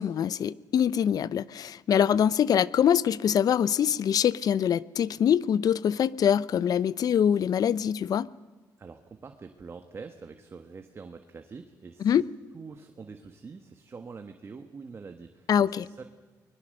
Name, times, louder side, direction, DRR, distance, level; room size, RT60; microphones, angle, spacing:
voice 1, 0.0-8.3 12.0-12.2 15.5-15.9, left 9 dB, 60° left, 0.6 m, -24 dB
voice 2, 8.8-12.2 12.5-16.0, right 4 dB, 35° right, 1.5 m, -45 dB
24.5 x 21.0 x 6.6 m
cardioid pair, 90°, 7 cm